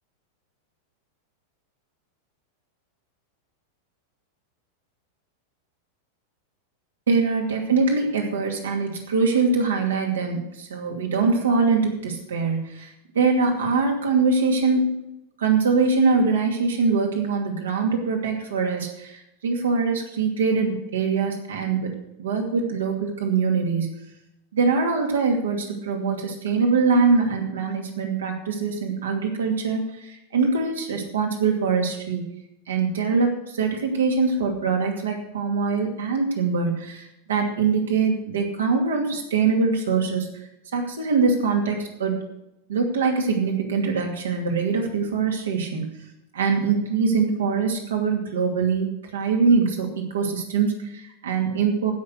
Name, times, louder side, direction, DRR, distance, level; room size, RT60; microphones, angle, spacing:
voice 1, 7.1-12.9 13.1-14.9 15.4-21.9 22.2-24.0 24.5-32.3 32.7-40.3 40.7-42.2 42.7-45.9 46.3-49.9 50.1-51.9, right 4 dB, 65° right, 2 dB, 2.5 m, -23 dB
15.5 x 6.4 x 6.6 m, 0.85 s
figure-of-eight pair, 90°, 0 cm